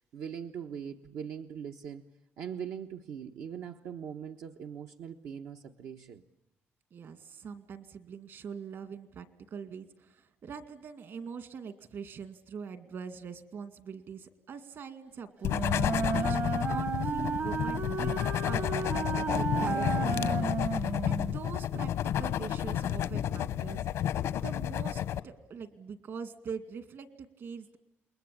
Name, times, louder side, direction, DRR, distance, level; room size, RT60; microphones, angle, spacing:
voice 1, 0.0-2.1 2.4-6.2, right 8 dB, 85° right, 4 dB, 1.2 m, -41 dB
voice 2, 6.9-18.1 18.5-27.8, right 6 dB, 60° right, 11 dB, 2.3 m, -43 dB
sound 1, 15.4-25.2, left 11 dB, 90° left, 1.0 m, -31 dB
Wind instrument woodwind instrument, 15.5-21.4, right 5 dB, 40° right, 0.9 m, -33 dB
28.5 x 21.5 x 8.7 m, 0.88 s
cardioid pair, 140°, 5 cm